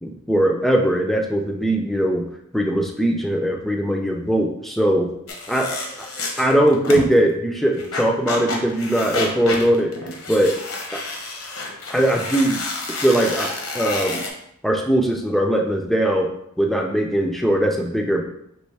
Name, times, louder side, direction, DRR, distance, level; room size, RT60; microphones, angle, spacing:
voice 1, 0.0-2.3 2.5-5.1 5.5-6.1 6.4-9.9 10.3-10.5 10.9-11.0 11.9-12.6 13.0-14.2 14.6-18.2, right 1 dB, ahead, 1 dB, 0.4 m, -20 dB
sound 1, 5.3-7.2 7.8-14.3, left 3 dB, 70° left, 0.9 m, -29 dB
5.3 x 3.0 x 3.3 m, 0.76 s
head